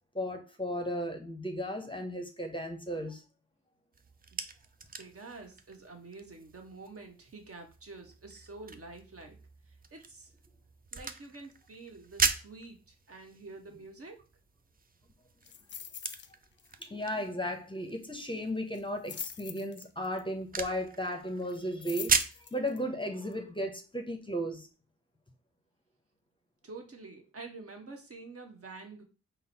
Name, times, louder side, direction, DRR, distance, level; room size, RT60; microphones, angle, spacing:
voice 1, 0.1-3.2 16.8-22.1 22.5-24.7, equal, 15° left, 0.8 m, -35 dB
sound 1, 3.9-22.5, right 4 dB, 25° right, 0.5 m, -39 dB
voice 2, 5.0-9.4 9.9-10.3 10.9-14.2 26.6-29.0, right 3 dB, 45° right, 1.1 m, -48 dB
sound 2, 15.4-16.3 16.6-16.9 17.1-17.2 18.7-20.2 21.5-22.8 23.3-23.4, left 8 dB, 35° left, 0.4 m, -43 dB
4.0 x 2.0 x 4.0 m
supercardioid pair, 40°, 32 cm